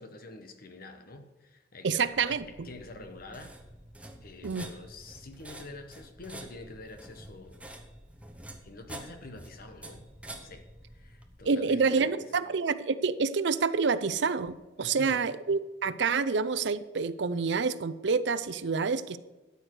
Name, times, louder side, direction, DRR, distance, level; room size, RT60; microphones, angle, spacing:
voice 1, 0.0-3.6 4.2-7.7 8.6-12.4 14.8-15.2, left 2 dB, 55° left, 7 dB, 1.2 m, -47 dB
voice 2, 1.8-2.7 4.4-4.7 11.5-19.2, right 5 dB, 70° right, 14 dB, 0.6 m, -28 dB
sound 1, 2.1-11.4, right 1 dB, 5° right, 1.0 m, -48 dB
13.0 x 8.2 x 4.7 m, 1.1 s
head